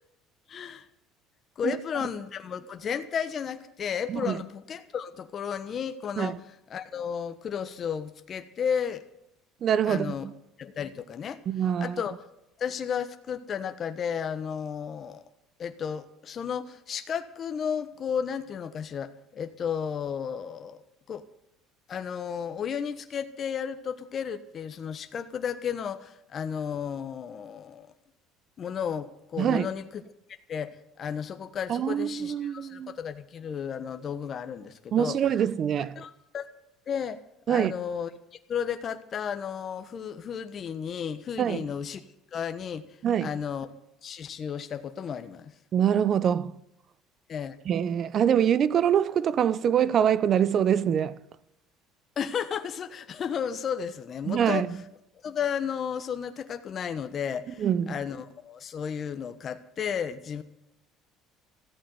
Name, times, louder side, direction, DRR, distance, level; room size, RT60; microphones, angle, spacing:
voice 1, 0.5-0.9 1.6-6.4 6.7-9.0 9.8-10.3 10.6-11.4 11.8-12.2 12.6-15.2 15.6-21.2 21.9-27.9 28.6-30.0 30.5-35.2 35.9-36.5 36.9-37.2 37.5-38.1 38.5-42.0 42.3-42.8 43.2-43.7 44.0-45.5 47.3-47.6 52.2-54.7 55.2-60.4, left 7 dB, 40° left, 1.2 m, -33 dB
voice 2, 4.1-4.4 6.2-6.4 9.6-10.3 11.5-12.0 29.4-29.7 31.7-32.9 34.9-35.9 37.5-37.7 41.4-41.6 43.0-43.3 45.7-46.5 47.7-51.2 54.3-54.7 57.6-58.0, right 9 dB, 45° right, 0.7 m, -24 dB
14.5 x 8.5 x 9.5 m
cardioid pair, 115°, 0 cm